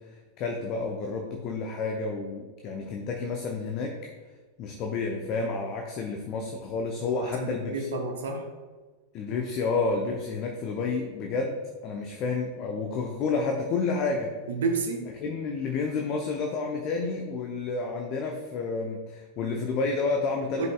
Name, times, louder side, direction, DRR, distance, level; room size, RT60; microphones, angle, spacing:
voice 1, 0.4-3.9 4.6-7.9 9.1-14.3 15.2-20.7, left 4 dB, 40° left, 2 dB, 0.7 m, -30 dB
voice 2, 7.2-8.5 14.5-15.1 20.6-20.7, right 4 dB, 60° right, 4 dB, 0.9 m, -30 dB
10.5 x 5.3 x 2.3 m, 1.3 s
figure-of-eight pair, 90°, 0 cm